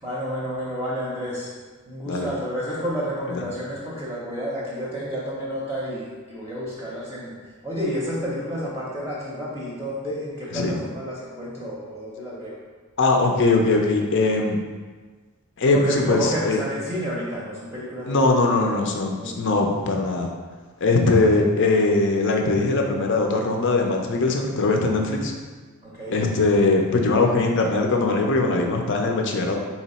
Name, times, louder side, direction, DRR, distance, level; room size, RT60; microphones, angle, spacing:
voice 1, 0.0-1.5 1.9-7.4 7.6-12.6 15.7-19.4 25.8-26.2, equal, 10° right, -7 dB, 0.7 m, -30 dB
voice 2, 13.0-14.6 15.6-16.6 18.1-20.3 20.8-25.3 26.1-29.6, left 3 dB, 55° left, 2 dB, 0.6 m, -21 dB
4.1 x 3.0 x 4.2 m, 1.4 s
head